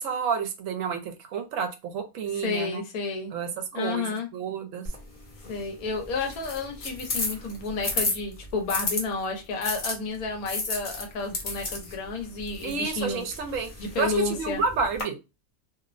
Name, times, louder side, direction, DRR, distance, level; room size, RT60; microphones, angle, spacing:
voice 1, 0.0-2.8 3.3-4.1 4.3-4.9 12.6-13.7 14.0-15.2, right 5 dB, 70° right, 0.9 m, -30 dB
voice 2, 2.3-3.3 3.7-4.3 5.5-13.2 13.8-14.6, left 4 dB, 85° left, 1.2 m, -31 dB
sound 1, 4.9-9.0 9.6-15.0, left 3 dB, 45° left, 0.7 m, -33 dB
2.8 x 2.0 x 2.4 m
omnidirectional pair, 1.5 m